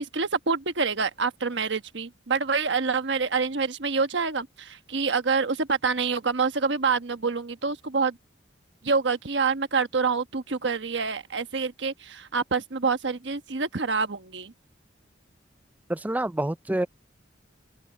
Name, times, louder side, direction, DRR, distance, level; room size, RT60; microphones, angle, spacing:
voice 1, 0.0-8.2 8.8-14.5, right 4 dB, 75° right, 1.2 m, -27 dB
voice 2, 15.9-16.9, right 1 dB, 10° right, 0.3 m, -27 dB
open air
head